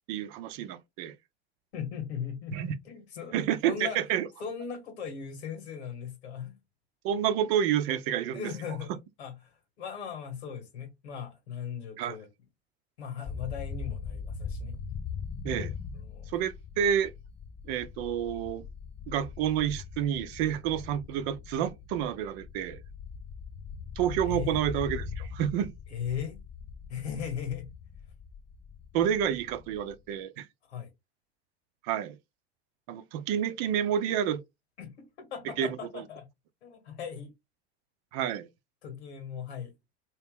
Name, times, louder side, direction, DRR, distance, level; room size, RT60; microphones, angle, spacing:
voice 1, 0.1-1.1 2.5-2.7 3.3-4.3 7.0-8.5 12.0-12.2 15.4-15.7 16.3-17.1 17.7-18.6 19.1-22.8 24.0-25.7 28.9-30.5 31.8-32.2 32.9-34.4 35.6-36.0 38.1-38.5, right 9 dB, 65° right, 0.7 m, -29 dB
voice 2, 1.7-4.0 4.4-6.6 8.3-12.3 13.0-14.8 15.9-16.3 24.2-24.6 25.9-26.4 26.9-27.7 30.7-30.9 34.8-36.3 36.6-37.3 38.8-39.7, left 7 dB, 85° left, 1.4 m, -38 dB
sound 1, 13.2-30.1, left 6 dB, 20° left, 0.4 m, -41 dB
3.0 x 2.8 x 3.6 m
hypercardioid pair, 90°, 32 cm